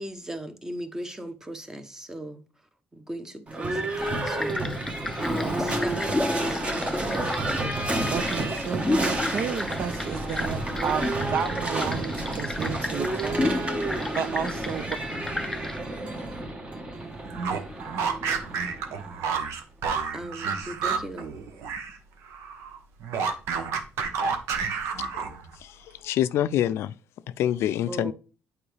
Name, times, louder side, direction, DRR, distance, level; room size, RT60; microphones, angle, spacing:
voice 1, 0.0-2.4 2.9-4.6 5.2-7.1 20.1-21.3 27.9-28.1, right 1 dB, 10° right, 0.9 m, -37 dB
Livestock farm animals working animals / Bell, 3.5-19.3, right 2 dB, 25° right, 1.2 m, -30 dB
sound 1, 4.0-15.8, left 2 dB, 10° left, 0.4 m, -33 dB
voice 2, 8.1-13.6 14.1-15.0, right 8 dB, 55° right, 0.5 m, -32 dB
sound 2, 17.3-22.0 22.3-25.5, right 5 dB, 85° right, 1.0 m, -30 dB
voice 3, 26.0-26.9 27.4-28.1, left 11 dB, 70° left, 0.3 m, -25 dB
8.6 x 4.7 x 3.3 m
cardioid pair, 135°, 5 cm